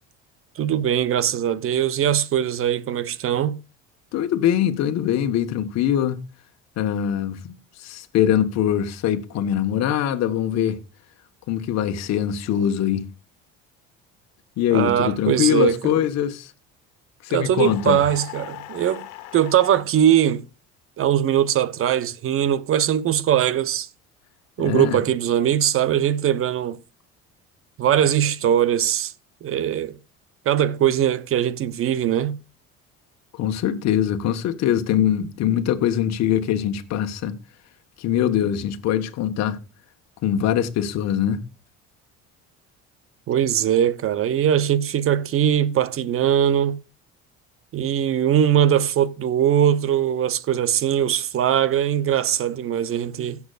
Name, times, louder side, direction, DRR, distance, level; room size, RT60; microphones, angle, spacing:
voice 1, 0.6-3.6 14.7-15.8 17.3-19.0 19.3-20.4 21.0-23.9 24.6-26.8 27.8-29.1 29.4-30.0 30.5-32.4 43.3-46.8 47.7-53.4, right 10 dB, 45° right, 0.9 m, -21 dB
voice 2, 4.1-6.2 6.8-7.5 7.8-10.8 11.5-13.1 14.6-16.5 17.2-18.0 24.6-25.0 33.3-37.4 38.0-39.6 40.2-41.4, left 10 dB, 60° left, 1.4 m, -22 dB
sound 1, 17.6-19.9, left 15 dB, 80° left, 1.6 m, -39 dB
16.5 x 7.1 x 2.4 m
supercardioid pair, 105°, 30 cm